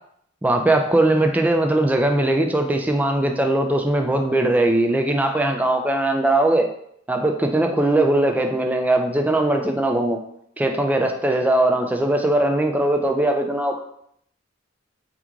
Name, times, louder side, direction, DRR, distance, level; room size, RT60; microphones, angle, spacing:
voice 1, 0.4-6.7 7.1-10.2 10.6-13.8, right 1 dB, 10° right, 4 dB, 0.3 m, -20 dB
3.0 x 2.4 x 3.5 m, 0.69 s
head